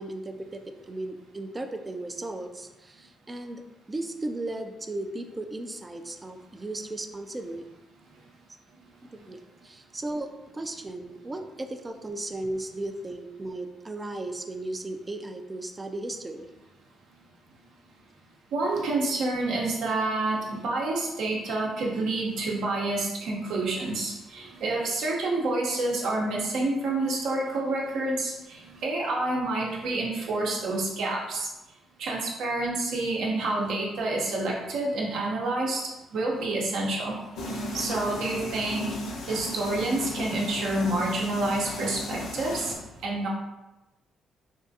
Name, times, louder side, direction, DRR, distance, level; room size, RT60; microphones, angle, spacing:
voice 1, 0.0-3.6 3.9-7.7 9.1-16.5, right 2 dB, 25° right, 6 dB, 0.3 m, -36 dB
voice 2, 18.5-31.5 32.0-35.8 36.1-38.9 39.3-42.7 43.0-43.3, right 2 dB, 80° right, -2 dB, 0.7 m, -28 dB
sound 1, 37.4-42.7, left 1 dB, 80° left, 0.6 m, -36 dB
3.5 x 2.4 x 2.6 m, 1.0 s
cardioid pair, 90°, 0 cm